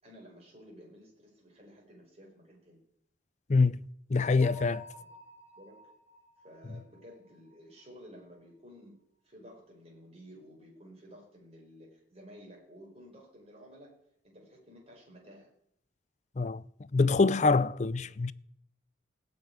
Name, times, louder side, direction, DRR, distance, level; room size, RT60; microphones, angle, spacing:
voice 1, 0.0-2.8 4.9-5.1 5.5-5.9 6.4-14.0 14.2-15.5 18.0-18.1, equal, 30° right, 4.6 m, -53 dB
voice 2, 3.5-3.8 4.1-4.9 16.4-16.6 16.9-18.3, left 3 dB, 40° left, 0.5 m, -25 dB
Bell, 4.4-8.1, equal, 5° right, 6.6 m, -54 dB
17.5 x 6.8 x 9.4 m
head